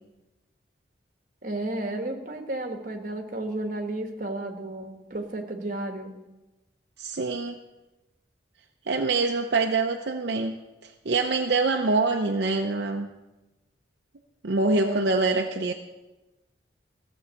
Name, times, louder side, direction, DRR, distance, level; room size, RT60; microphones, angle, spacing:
voice 1, 1.4-6.1 14.7-15.1, right 2 dB, 50° right, 4 dB, 1.4 m, -32 dB
voice 2, 7.0-7.6 8.9-10.6 10.8-13.1 14.4-15.7, right 3 dB, 70° right, 3 dB, 0.7 m, -25 dB
15.0 x 7.2 x 6.5 m, 1.1 s
head